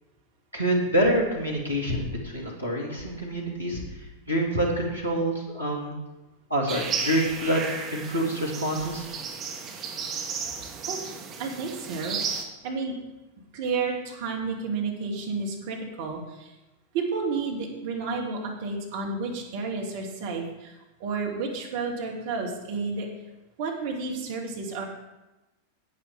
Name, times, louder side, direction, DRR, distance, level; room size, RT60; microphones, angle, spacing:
voice 1, 0.5-3.8 4.3-5.9 6.5-7.7 7.9-9.1, right 1 dB, 90° right, -3 dB, 2.6 m, -26 dB
sound 1, 6.7-12.4, right 5 dB, 25° right, 1.5 m, -34 dB
voice 2, 11.4-12.2 12.6-13.0 13.5-16.5 16.9-20.7 21.0-23.1 23.6-24.8, right 4 dB, 50° right, 0 dB, 2.3 m, -31 dB
9.9 x 8.7 x 5.0 m, 1.0 s
figure-of-eight pair, 90°, 0 cm